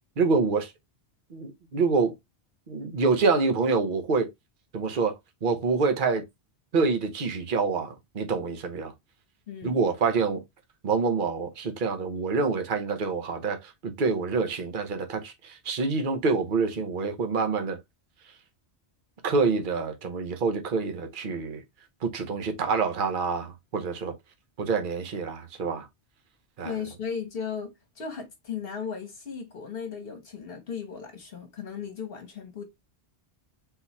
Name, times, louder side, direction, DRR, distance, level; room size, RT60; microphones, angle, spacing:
voice 1, 0.2-0.7 1.3-2.1 2.7-4.3 4.7-5.1 5.4-6.2 6.7-8.9 9.6-10.4 10.8-13.6 13.8-15.3 15.6-17.8 19.2-21.6 22.0-24.1 24.6-25.8 26.6-26.7, right 4 dB, 50° right, 1.0 m, -26 dB
voice 2, 26.6-27.7 27.9-32.6, left 6 dB, 60° left, 1.2 m, -36 dB
3.9 x 3.0 x 4.0 m
omnidirectional pair, 1.1 m